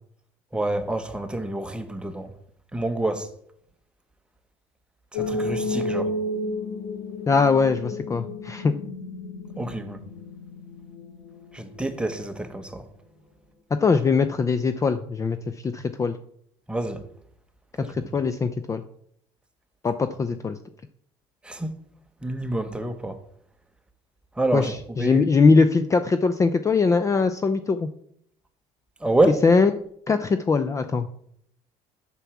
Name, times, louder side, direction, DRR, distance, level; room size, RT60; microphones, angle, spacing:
voice 1, 0.5-2.3 2.7-3.3 5.1-6.1 9.6-10.0 11.5-12.8 16.7-17.0 21.4-21.7 22.2-23.2 24.4-24.7 25.0-25.3 29.0-29.4, right 2 dB, 5° right, 1.1 m, -27 dB
sound 1, 5.1-12.1, left 2 dB, 65° left, 2.9 m, -32 dB
voice 2, 7.3-8.7 13.8-15.4 15.6-16.2 17.9-18.8 19.8-20.6 24.5-27.9 29.4-29.7 30.1-31.1, left 4 dB, 25° left, 0.5 m, -21 dB
6.9 x 6.1 x 7.1 m
cardioid pair, 105°, 13 cm